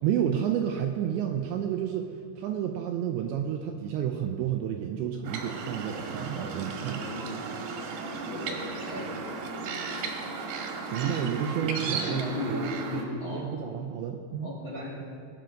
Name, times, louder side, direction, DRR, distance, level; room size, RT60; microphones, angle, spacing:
voice 1, 0.0-7.1 10.8-12.3 13.3-14.8, right 9 dB, 85° right, 4 dB, 2.6 m, -30 dB
sound 1, 5.2-13.0, right 4 dB, 65° right, 2.9 m, -35 dB
voice 2, 6.9-7.4 8.3-9.2 10.0-10.1 10.9-11.1 12.1-13.5 14.4-14.9, left 2 dB, 50° left, -5 dB, 1.4 m, -36 dB
20.5 x 9.0 x 5.2 m, 2.3 s
omnidirectional pair, 5.8 m